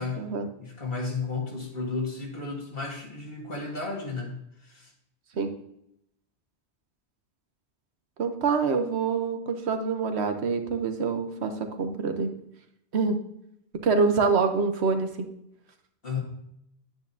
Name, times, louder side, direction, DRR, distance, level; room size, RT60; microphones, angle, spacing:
voice 1, 0.6-4.9 16.0-16.2, left 4 dB, 60° left, 0 dB, 2.0 m, -33 dB
voice 2, 8.2-12.3 12.9-13.2 13.8-15.1, right 4 dB, 75° right, 6 dB, 1.2 m, -25 dB
9.4 x 9.3 x 2.7 m, 0.77 s
omnidirectional pair, 1.1 m